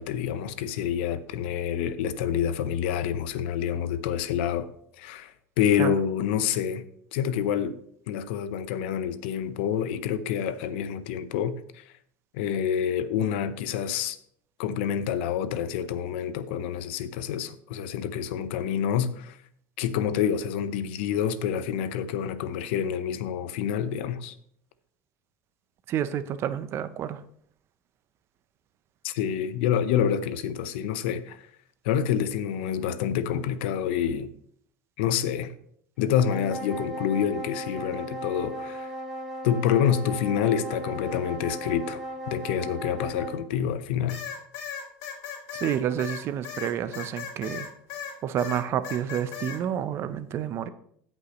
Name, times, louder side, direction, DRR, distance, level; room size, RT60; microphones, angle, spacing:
voice 1, 0.0-4.7 5.0-6.8 7.1-7.8 8.1-11.8 12.3-14.2 14.6-19.4 19.8-24.3 29.0-31.5 31.8-34.3 35.0-35.5 36.0-38.9 39.4-42.0 42.3-44.2, left 9 dB, 85° left, 0.8 m, -27 dB
voice 2, 25.9-27.2 45.5-47.6 48.2-50.7, right 10 dB, 45° right, 0.7 m, -29 dB
sound 1, 36.1-43.5, equal, 5° right, 4.3 m, -36 dB
sound 2, 44.1-48.1 48.4-49.6, left 7 dB, 65° left, 3.1 m, -36 dB
16.0 x 5.4 x 3.1 m
supercardioid pair, 120°, 6 cm